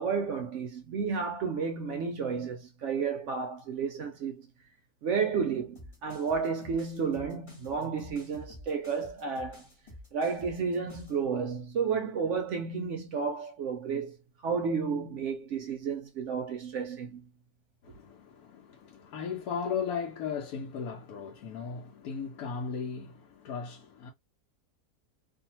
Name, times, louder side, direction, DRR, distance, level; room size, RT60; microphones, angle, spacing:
voice 1, 0.0-4.5 5.0-9.7 10.1-14.2 14.4-17.3, right 5 dB, 70° right, 0.7 m, -32 dB
sound 1, 5.8-11.2, left 1 dB, 25° left, 1.1 m, -50 dB
voice 2, 17.8-24.1, left 6 dB, 70° left, 1.1 m, -36 dB
2.6 x 2.5 x 2.8 m
omnidirectional pair, 1.7 m